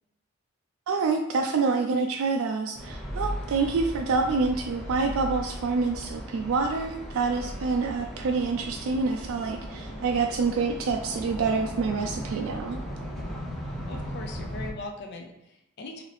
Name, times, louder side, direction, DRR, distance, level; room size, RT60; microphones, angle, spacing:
voice 1, 0.9-12.8, right 4 dB, 70° right, 3 dB, 0.3 m, -27 dB
sound 1, 2.7-14.7, equal, ahead, 0.5 m, -37 dB
sound 2, 7.3-13.4, right 1 dB, 30° left, 1.1 m, -45 dB
voice 2, 13.9-16.0, left 2 dB, 50° left, 3 dB, 0.4 m, -40 dB
4.0 x 2.7 x 3.2 m, 0.83 s
head